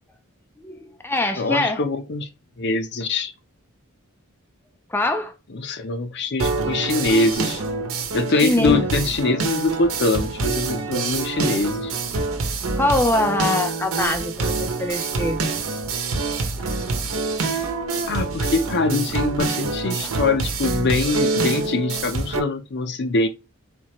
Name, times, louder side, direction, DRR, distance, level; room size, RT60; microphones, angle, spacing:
voice 1, 0.6-1.8 4.9-5.3 8.3-8.8 12.3-12.4 12.8-15.5 20.0-20.1, left 2 dB, 10° left, 0.4 m, -23 dB
voice 2, 1.4-2.3 2.6-3.3 5.5-7.6 8.1-11.9 18.1-23.3, left 3 dB, 50° left, 0.6 m, -23 dB
sound 1, 6.4-22.4, right 3 dB, 70° right, 1.0 m, -26 dB
4.4 x 3.2 x 3.0 m
head